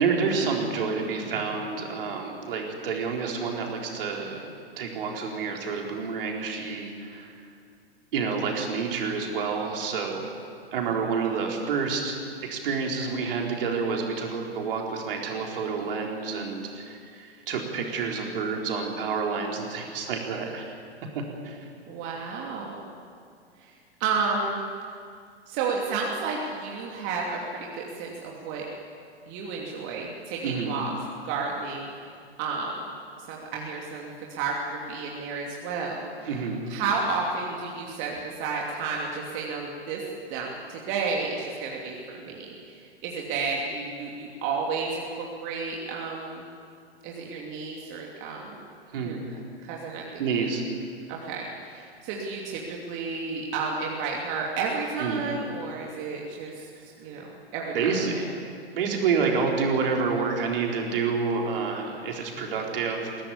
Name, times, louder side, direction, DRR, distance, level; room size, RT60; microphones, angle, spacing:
voice 1, 0.0-4.4 4.8-7.3 8.1-10.3 10.7-12.2 12.4-20.7 21.4-21.7 30.4-30.8 36.3-36.6 48.9-49.2 50.2-50.6 55.0-55.2 57.7-58.2 58.7-63.2, right 5 dB, 55° right, 0 dB, 4.1 m, -28 dB
voice 2, 21.9-22.8 23.6-23.7 24.0-24.7 25.5-28.6 29.3-30.9 31.2-31.9 32.4-32.7 33.3-36.3 36.7-40.0 40.3-46.4 47.0-48.6 49.0-49.2 49.6-50.2 51.1-56.7 57.0-58.2, right 4 dB, 35° right, -2 dB, 2.9 m, -32 dB
21.5 x 17.5 x 8.5 m, 2.2 s
figure-of-eight pair, 105°, 32 cm